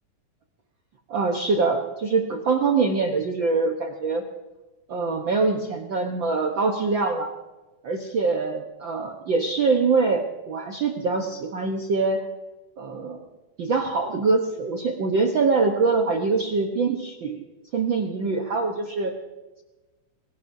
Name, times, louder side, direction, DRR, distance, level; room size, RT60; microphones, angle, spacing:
voice 1, 1.1-4.2 4.9-7.3 7.8-12.3 12.8-13.2 13.6-17.4 17.7-19.1, right 4 dB, 90° right, 2 dB, 1.0 m, -24 dB
25.0 x 17.5 x 2.7 m, 1.1 s
omnidirectional pair, 3.9 m